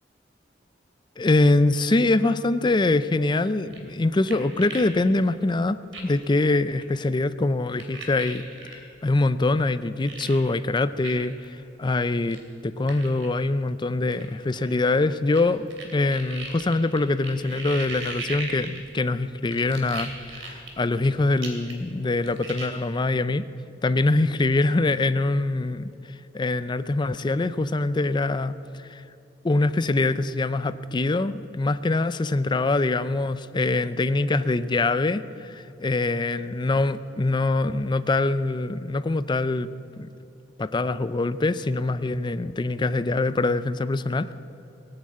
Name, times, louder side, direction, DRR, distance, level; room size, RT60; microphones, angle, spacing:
voice 1, 1.2-8.4 9.0-15.7 15.9-23.5 23.8-25.9 26.3-29.0 29.4-39.7 40.0-40.1 40.6-44.3, left 2 dB, 25° left, 13 dB, 0.4 m, -24 dB
sound 1, 3.6-4.9 5.2-5.3 5.9-6.2 6.7-6.9 7.8-8.7 9.6-9.7 10.1-10.4 11.0-11.1 11.4-11.5 12.3-12.4 12.9-13.3 14.1-15.4 15.7-19.1 19.5-21.1 21.4-21.9 22.2-22.7, right 3 dB, 90° right, 2.9 m, -37 dB
19.0 x 8.9 x 8.5 m, 2.8 s
head